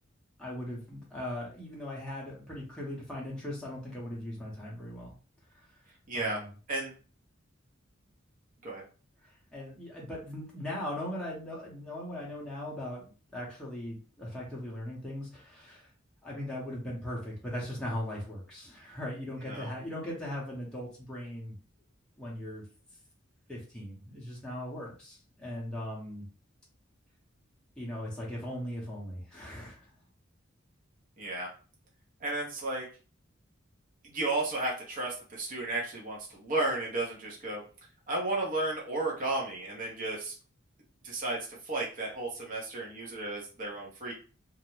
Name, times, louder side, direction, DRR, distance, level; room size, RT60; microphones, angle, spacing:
voice 1, 0.4-5.1 6.1-6.5 9.5-15.9 16.2-21.6 22.2-22.6 23.5-26.3 27.8-29.9, left 1 dB, 5° left, -6 dB, 0.6 m, -39 dB
voice 2, 6.1-6.4 6.7-6.9 8.6-8.8 19.5-19.7 31.2-31.5 32.2-32.8 34.0-37.6 38.1-40.3 41.0-44.1, right 2 dB, 40° right, -3 dB, 0.7 m, -33 dB
2.4 x 2.1 x 3.0 m, 0.38 s
head